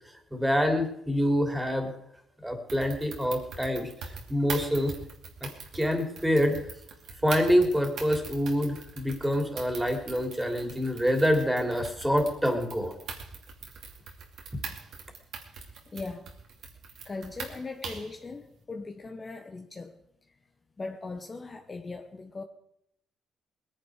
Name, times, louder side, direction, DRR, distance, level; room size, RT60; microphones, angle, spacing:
voice 1, 0.3-1.9 2.4-4.9 5.4-6.6 7.2-12.9, equal, 5° right, 4 dB, 3.0 m, -26 dB
sound 1, 2.7-18.2, right 5 dB, 75° right, 2.6 m, -42 dB
voice 2, 15.9-16.3 17.0-20.0 20.8-22.4, left 3 dB, 30° left, 5 dB, 1.1 m, -39 dB
20.5 x 10.0 x 4.9 m, 0.74 s
cardioid pair, 90°, 0 cm